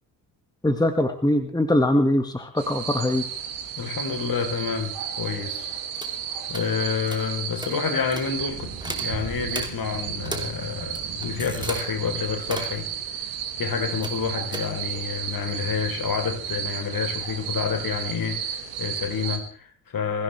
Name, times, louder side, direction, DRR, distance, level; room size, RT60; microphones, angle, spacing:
voice 1, 0.6-3.2, left 1 dB, 10° left, 7 dB, 1.8 m, -22 dB
sound 1, 2.6-19.4, right 8 dB, 70° right, 2.4 m, -33 dB
voice 2, 3.8-5.7 6.5-12.9 13.6-20.2, left 6 dB, 40° left, 5 dB, 4.0 m, -29 dB
sound 2, 6.0-6.1 6.5-6.7 7.1-7.2 7.6-7.7 8.1-8.3 8.8-9.1 9.5-9.7 10.2-10.5 10.8-11.8 12.4-12.8 14.0-14.2 14.5-14.6, right 1 dB, 10° right, 3.0 m, -34 dB
23.0 x 15.5 x 3.4 m, 0.43 s
figure-of-eight pair, 45°, 50 cm